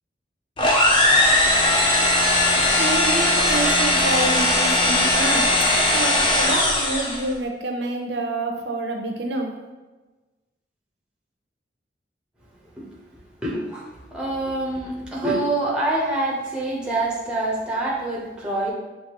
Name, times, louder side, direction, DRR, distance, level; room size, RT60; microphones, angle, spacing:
sound 1, 0.6-7.3, left 1 dB, 25° left, 0.5 m, -19 dB
voice 1, 2.8-5.5 5.9-9.6, right 2 dB, 75° right, 2 dB, 0.6 m, -27 dB
voice 2, 13.4-18.7, right 2 dB, 5° right, -4 dB, 0.7 m, -26 dB
5.7 x 2.7 x 3.0 m, 1.2 s
head